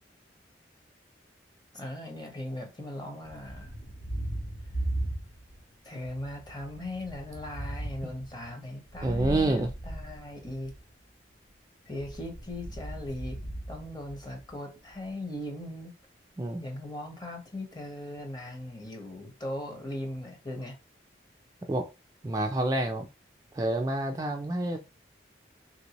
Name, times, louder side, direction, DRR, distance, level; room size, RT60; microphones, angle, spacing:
voice 1, 1.7-3.7 5.8-10.7 11.9-13.4 13.7-15.9 16.6-20.7, left 1 dB, 25° left, 0.8 m, -39 dB
Thunder, 3.2-5.7 6.0-10.8 11.9-14.5, right 1 dB, 70° left, 0.9 m, -38 dB
voice 2, 9.0-9.7 16.4-16.6 21.7-21.8 22.2-23.1 23.5-24.8, right 2 dB, 20° right, 0.3 m, -28 dB
3.3 x 2.6 x 2.8 m
head